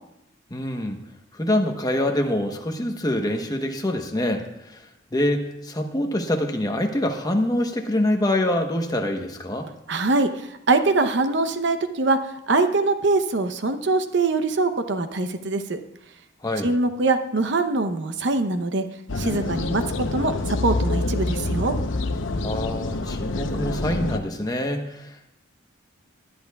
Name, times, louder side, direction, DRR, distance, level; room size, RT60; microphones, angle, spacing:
voice 1, 0.5-1.0 1.3-4.8 5.1-9.7 16.4-16.7 22.4-25.3, left 1 dB, 20° left, 4 dB, 1.0 m, -25 dB
voice 2, 9.9-12.2 12.5-15.8 16.6-18.9 19.2-19.8 20.1-21.7, right 3 dB, 65° right, 9 dB, 0.8 m, -23 dB
sound 1, 19.1-24.2, left 2 dB, 85° left, 0.8 m, -26 dB
19.0 x 10.5 x 2.3 m, 0.82 s
head